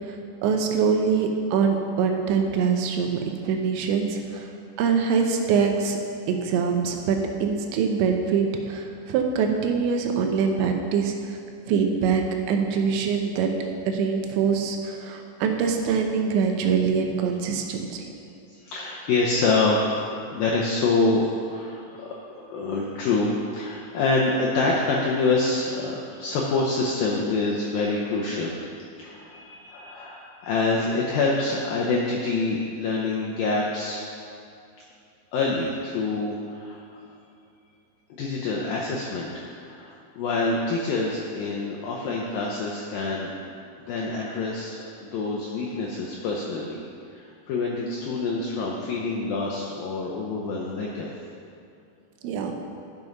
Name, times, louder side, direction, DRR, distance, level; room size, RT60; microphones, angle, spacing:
voice 1, 0.4-4.5 4.8-6.0 6.3-11.4 11.7-13.5 13.9-18.0 52.2-52.5, right 6 dB, 80° right, 3 dB, 3.1 m, -24 dB
voice 2, 18.5-28.6 29.0-34.0 35.3-37.0 38.2-43.3 43.9-46.8 47.1-51.1, left 3 dB, 80° left, -3 dB, 2.0 m, -26 dB
11.0 x 6.3 x 5.4 m, 2.6 s
omnidirectional pair, 5.2 m